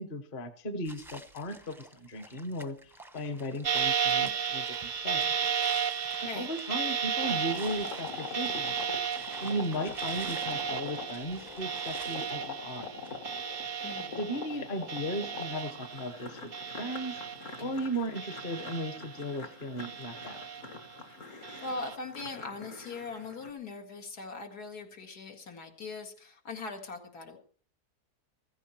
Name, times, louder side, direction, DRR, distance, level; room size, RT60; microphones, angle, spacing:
voice 1, 0.0-5.3 6.2-8.8 9.4-12.9 14.2-17.2 17.6-20.5, equal, 35° left, 10 dB, 1.2 m, -36 dB
sound 1, 0.8-13.7, right 1 dB, ahead, 0.6 m, -51 dB
sound 2, 3.6-16.2 16.5-17.7 18.1-19.4 19.8-20.8 21.4-21.9, right 7 dB, 45° right, 0.6 m, -34 dB
sound 3, 7.2-23.5, left 4 dB, 55° left, 1.8 m, -44 dB
voice 2, 13.8-14.2 21.6-27.4, left 3 dB, 80° left, 3 dB, 2.7 m, -40 dB
15.0 x 15.0 x 4.5 m, 0.43 s
omnidirectional pair, 1.7 m